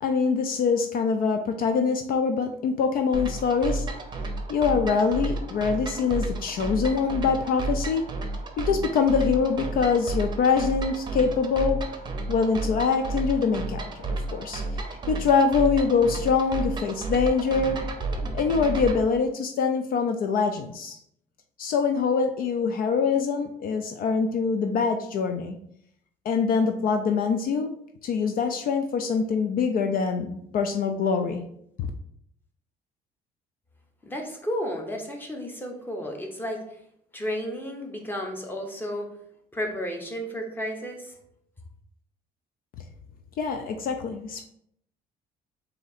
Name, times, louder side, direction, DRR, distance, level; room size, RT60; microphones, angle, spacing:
voice 1, 0.0-3.9 4.5-8.1 8.6-11.8 12.3-14.6 15.1-17.8 18.3-21.0 21.6-25.6 26.3-27.7 28.0-31.4 31.8-31.9 43.4-44.4, left 5 dB, 60° left, 6 dB, 0.4 m, -24 dB
sound 1, 3.1-19.0, right 2 dB, 25° right, 0.7 m, -32 dB
voice 2, 34.0-36.8 37.1-39.1 39.5-41.1, equal, 10° left, 2 dB, 0.9 m, -32 dB
4.0 x 2.7 x 4.1 m, 0.71 s
cardioid pair, 110°, 17 cm